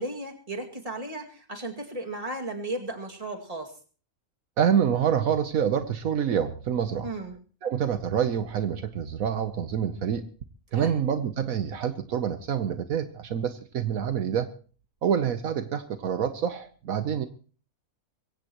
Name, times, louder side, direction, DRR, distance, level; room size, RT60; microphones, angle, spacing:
voice 1, 0.0-3.7 7.0-7.4 10.7-11.0, right 2 dB, 25° right, 2 dB, 2.4 m, -35 dB
voice 2, 4.6-7.1 7.6-10.2 10.7-14.5 15.0-17.3, right 8 dB, 75° right, 9 dB, 1.3 m, -27 dB
22.5 x 16.5 x 3.0 m, 0.39 s
omnidirectional pair, 1.5 m